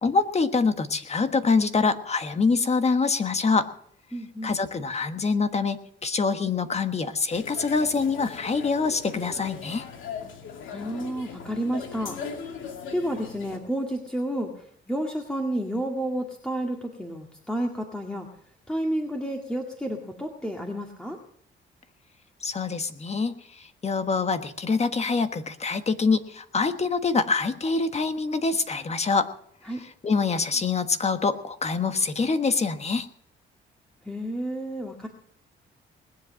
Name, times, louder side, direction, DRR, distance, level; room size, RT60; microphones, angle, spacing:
voice 1, 0.0-3.7 4.4-9.8 22.4-29.3 29.8-33.1, left 4 dB, 35° left, 9 dB, 1.4 m, -25 dB
voice 2, 4.1-4.6 10.7-12.5 12.9-18.3 18.7-21.2 29.6-29.8 34.0-35.1, right 1 dB, 5° left, 1 dB, 2.0 m, -31 dB
sound 1, 7.3-13.6, left 6 dB, 75° left, 2.6 m, -39 dB
20.0 x 7.9 x 7.6 m, 0.65 s
cardioid pair, 90°, 20 cm